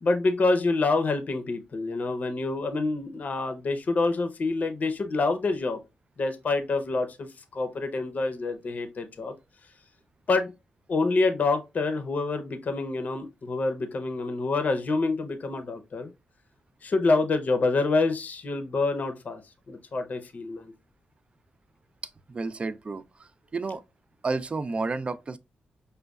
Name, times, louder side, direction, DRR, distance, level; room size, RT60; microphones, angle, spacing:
voice 1, 0.0-5.8 6.2-7.3 7.5-9.3 10.3-10.5 10.9-16.1 16.8-19.4 19.7-20.7, left 3 dB, 50° left, 0.6 m, -27 dB
voice 2, 22.3-23.8 24.2-25.4, right 3 dB, 30° right, 0.3 m, -31 dB
5.1 x 2.2 x 2.2 m
cardioid pair, 90°, 4 cm